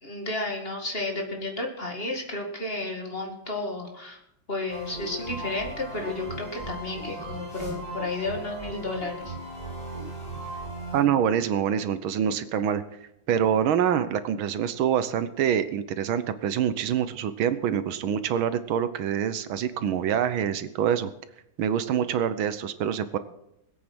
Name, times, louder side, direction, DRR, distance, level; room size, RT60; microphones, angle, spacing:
voice 1, 0.0-4.2 4.5-9.4, left 2 dB, 30° left, 2 dB, 2.3 m, -32 dB
sound 1, 4.7-11.0, right 1 dB, 20° right, 6.0 m, -37 dB
voice 2, 10.9-12.8 13.3-21.1 21.6-23.2, right 9 dB, 85° right, 12 dB, 1.7 m, -25 dB
20.5 x 8.6 x 6.1 m, 0.82 s
omnidirectional pair, 2.2 m